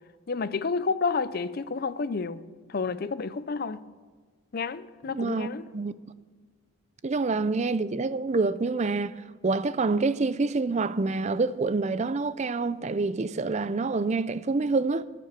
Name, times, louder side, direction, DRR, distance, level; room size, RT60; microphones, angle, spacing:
voice 1, 0.3-2.4 2.7-3.8 4.5-5.7, left 4 dB, 45° left, 0.5 m, -30 dB
voice 2, 5.1-5.5 5.7-5.9 7.0-15.0, right 3 dB, 35° right, 0.4 m, -27 dB
16.0 x 6.9 x 9.5 m
head